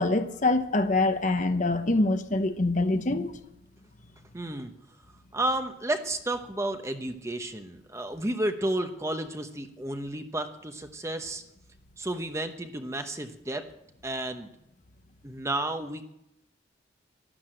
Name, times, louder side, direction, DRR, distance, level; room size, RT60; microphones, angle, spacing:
voice 1, 0.0-3.3, left 2 dB, 40° left, 0.9 m, -25 dB
voice 2, 4.3-4.7 5.3-11.4 12.0-13.6 14.0-14.5 15.2-16.0, right 1 dB, 15° right, 0.9 m, -32 dB
12.5 x 12.0 x 7.7 m
head